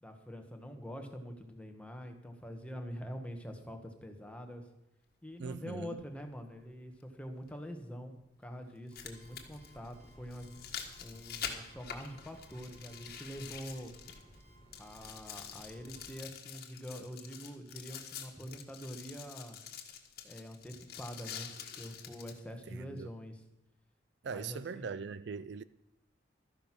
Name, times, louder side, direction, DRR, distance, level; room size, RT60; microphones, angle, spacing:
voice 1, 0.0-4.6 5.2-8.1 8.4-10.5 11.0-13.9 14.8-19.6 20.2-23.4 24.3-25.1, equal, 5° left, 1.4 m, -45 dB
voice 2, 5.4-6.0 22.7-23.1 24.2-25.6, right 5 dB, 65° right, 0.4 m, -41 dB
sound 1, 5.5-5.6 7.5-7.6 8.7-14.4 14.7-22.4 23.0-23.1, left 7 dB, 55° left, 1.6 m, -46 dB
sound 2, 8.9-16.1, equal, 35° right, 3.9 m, -57 dB
13.0 x 10.5 x 6.1 m
head